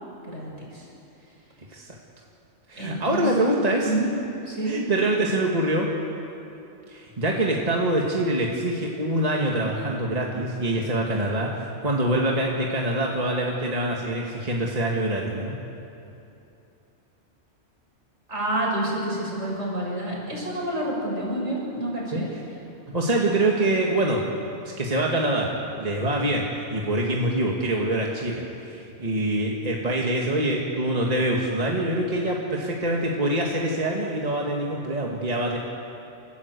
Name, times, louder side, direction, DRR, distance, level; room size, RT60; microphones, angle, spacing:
voice 1, 0.2-0.9 2.8-3.3 3.8-4.1 4.5-4.7 18.3-22.3, right 1 dB, 65° right, -4 dB, 7.0 m, -28 dB
voice 2, 2.7-3.9 4.6-5.9 6.9-15.6 22.1-22.4 22.9-24.2 24.6-35.6, right 1 dB, 30° right, -2 dB, 2.0 m, -25 dB
29.5 x 14.5 x 8.2 m, 2.8 s
omnidirectional pair, 1.3 m